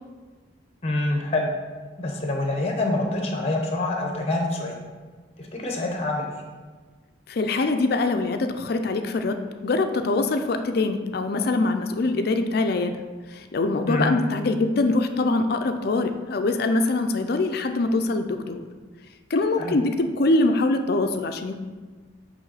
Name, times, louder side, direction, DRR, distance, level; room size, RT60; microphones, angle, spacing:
voice 1, 0.8-1.5 2.0-4.8 5.4-6.4 13.9-14.2 19.6-19.8, left 2 dB, 30° left, 2 dB, 0.9 m, -26 dB
voice 2, 7.3-13.0 13.3-18.7 19.3-21.6, left 2 dB, 55° left, 7 dB, 0.4 m, -23 dB
8.0 x 3.1 x 4.0 m, 1.4 s
head